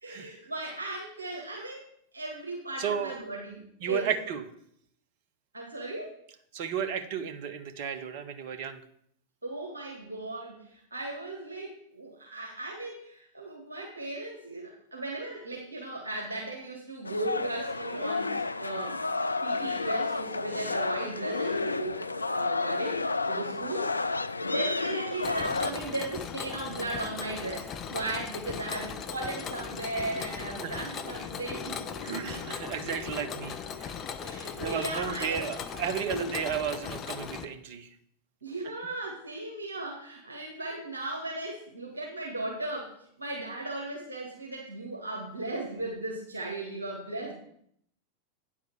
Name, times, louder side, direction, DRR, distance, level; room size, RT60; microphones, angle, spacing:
voice 1, 0.0-1.8 2.1-4.1 5.5-6.1 9.4-19.0 19.4-22.0 22.3-23.9 24.4-31.8 34.2-35.4 36.1-36.3 38.4-47.3, right 2 dB, 75° right, -3 dB, 2.0 m, -36 dB
voice 2, 2.8-3.2 3.8-4.4 6.5-8.8 30.6-30.8 32.0-33.9 34.6-37.9, right 8 dB, 50° right, 8 dB, 1.0 m, -33 dB
sound 1, 17.0-25.7, left 3 dB, 80° left, 0.4 m, -31 dB
Mechanisms, 25.2-37.4, left 7 dB, 30° left, 0.7 m, -38 dB
sound 2, 28.7-34.4, left 1 dB, 5° right, 4.2 m, -48 dB
9.2 x 4.9 x 7.1 m, 0.67 s
figure-of-eight pair, 90°, 0 cm